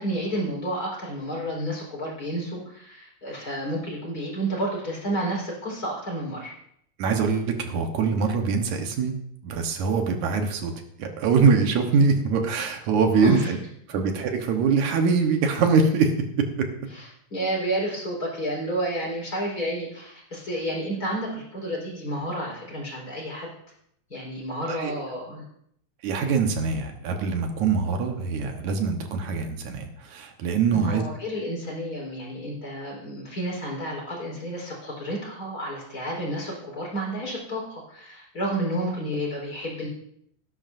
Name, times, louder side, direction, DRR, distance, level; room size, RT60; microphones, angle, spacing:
voice 1, 0.0-6.5 13.1-13.5 16.9-23.5 24.1-25.4 30.7-39.9, right 1 dB, 30° left, -3 dB, 4.5 m, -30 dB
voice 2, 7.0-9.2 9.4-10.7 11.0-13.6 13.9-16.1 16.4-16.7 24.7-24.9 26.0-31.0, right 5 dB, 80° right, 4 dB, 2.6 m, -23 dB
18.5 x 11.0 x 2.6 m, 0.70 s
omnidirectional pair, 3.3 m